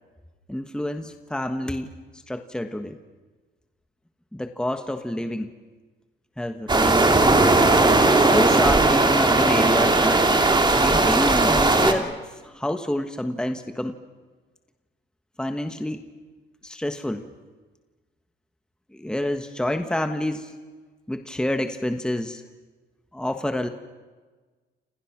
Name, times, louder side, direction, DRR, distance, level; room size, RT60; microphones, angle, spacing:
voice 1, 0.5-3.0 4.3-5.5 6.4-7.1 8.2-10.4 10.7-14.0 15.4-16.0 16.6-17.3 18.9-20.5 21.1-22.4 23.1-23.7, left 1 dB, 5° left, 7 dB, 1.4 m, -28 dB
sound 1, 6.7-11.9, right 2 dB, 20° right, 2.5 m, -18 dB
29.0 x 27.5 x 6.1 m, 1.3 s
cardioid pair, 90°, 20 cm